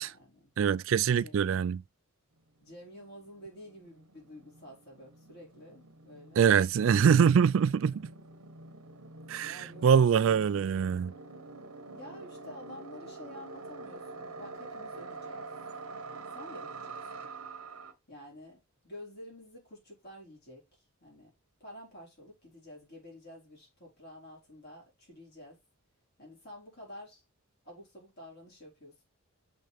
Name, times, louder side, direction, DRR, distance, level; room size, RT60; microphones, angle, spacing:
voice 1, 0.0-0.5 1.1-1.5 2.6-6.5 9.4-9.9 10.2-10.4 11.9-15.5 16.0-17.3 18.1-21.3 21.6-25.6 26.2-27.2 27.6-29.1, left 1 dB, 45° left, 4.7 m, -50 dB
voice 2, 0.6-1.8 6.4-8.0 9.3-11.1, right 7 dB, 60° right, 0.3 m, -24 dB
sound 1, 2.4-2.5 2.7-17.9, right 3 dB, 85° right, 1.1 m, -46 dB
6.6 x 5.9 x 3.5 m
head